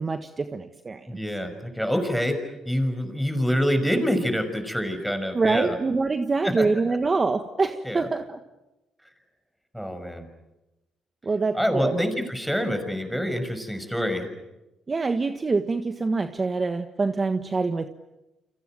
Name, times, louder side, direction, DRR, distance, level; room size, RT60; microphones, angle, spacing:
voice 1, 0.0-1.1 5.3-8.4 11.2-12.0 14.9-17.9, right 3 dB, 30° right, 8 dB, 1.4 m, -25 dB
voice 2, 1.1-5.8 6.4-7.0 7.8-8.1 9.7-10.3 11.5-14.3, equal, ahead, 8 dB, 6.1 m, -26 dB
29.5 x 26.0 x 7.7 m, 0.98 s
cardioid pair, 90°, 0 cm